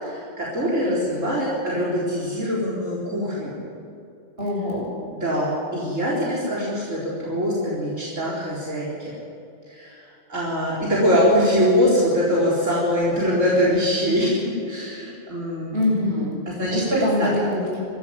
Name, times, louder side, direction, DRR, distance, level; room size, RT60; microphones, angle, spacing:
voice 1, 0.0-3.5 5.1-9.1 9.7-10.0 10.3-15.8 16.5-17.3, equal, 75° right, -6 dB, 4.6 m, -23 dB
voice 2, 4.4-4.9 15.7-16.4 16.7-17.8, left 1 dB, 50° right, -3 dB, 8.0 m, -23 dB
25.0 x 14.5 x 9.6 m, 2.6 s
omnidirectional pair, 1.3 m